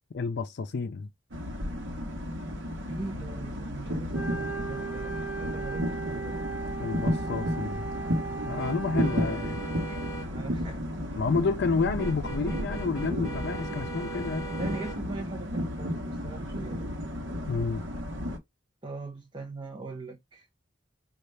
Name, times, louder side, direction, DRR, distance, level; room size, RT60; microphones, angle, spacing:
voice 1, 0.1-1.1 6.8-7.8 8.5-9.6 11.2-14.5 17.5-17.8, left 4 dB, 60° left, 0.5 m, -30 dB
sound 1, 1.3-18.4, equal, 70° right, 1.0 m, -33 dB
voice 2, 2.9-6.4 8.8-9.3 9.6-10.0 10.3-11.2 11.6-12.0 14.6-16.9 18.8-20.5, right 3 dB, 25° right, 0.8 m, -41 dB
Wind instrument woodwind instrument, 4.1-9.3, right 4 dB, 5° right, 1.3 m, -37 dB
sound 2, 8.6-10.3 12.0-15.0, right 3 dB, 20° left, 1.5 m, -40 dB
5.4 x 2.4 x 3.2 m
head